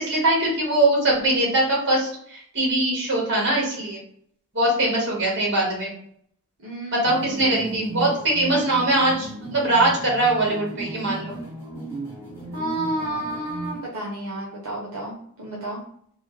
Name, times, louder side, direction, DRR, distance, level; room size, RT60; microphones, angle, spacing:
voice 1, 0.0-4.0 4.5-5.9 6.9-11.3, right 2 dB, 55° right, -3 dB, 1.4 m, -22 dB
voice 2, 6.6-7.8 12.5-15.8, right 1 dB, 85° right, -3 dB, 0.7 m, -31 dB
sound 1, 7.0-13.8, right 2 dB, 10° right, 1.0 m, -35 dB
3.1 x 2.1 x 3.1 m, 0.65 s
head